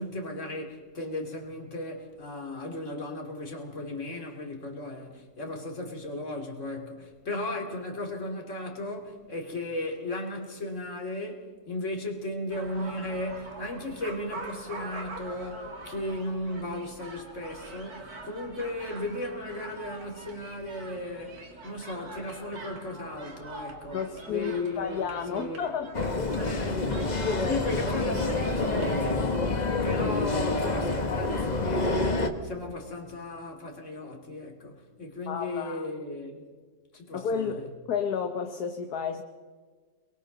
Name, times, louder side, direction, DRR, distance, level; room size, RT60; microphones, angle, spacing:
voice 1, 0.0-24.0 24.3-25.7 26.3-27.0 27.4-36.4 36.9-37.6, left 1 dB, 45° left, 3.2 m, -36 dB
sound 1, 12.5-29.1, right 2 dB, 60° right, 3.1 m, -44 dB
voice 2, 23.9-26.4 35.3-35.9 37.1-39.2, left 6 dB, 65° left, 1.6 m, -32 dB
sound 2, 25.9-32.3, left 3 dB, 25° left, 1.4 m, -27 dB
29.5 x 22.5 x 4.0 m
omnidirectional pair, 1.8 m